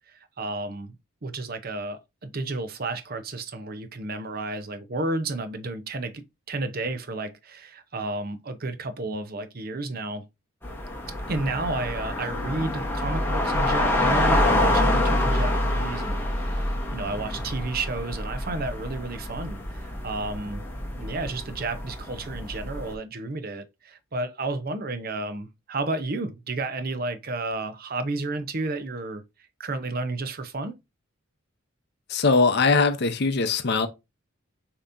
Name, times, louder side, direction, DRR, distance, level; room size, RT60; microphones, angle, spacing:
voice 1, 0.1-1.0 1.2-10.3 11.3-20.7 21.0-29.2 29.6-30.8, right 2 dB, 45° right, 0.6 m, -32 dB
sound 1, 10.6-22.9, left 1 dB, 10° left, 0.9 m, -26 dB
voice 2, 32.1-33.9, left 4 dB, 50° left, 0.6 m, -21 dB
6.8 x 2.9 x 2.5 m
head